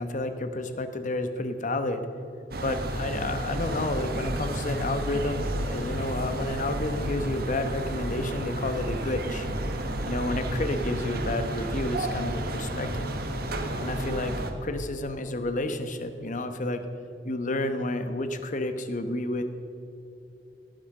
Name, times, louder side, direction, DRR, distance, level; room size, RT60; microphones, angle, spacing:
voice 1, 0.0-2.1 2.6-9.5 10.1-13.1 13.8-14.4 14.6-16.8 17.2-19.4, left 2 dB, 45° left, 9 dB, 1.0 m, -30 dB
sound 1, 2.5-14.5, right 1 dB, 60° right, 1.4 m, -31 dB
16.5 x 9.1 x 6.6 m, 2.9 s
head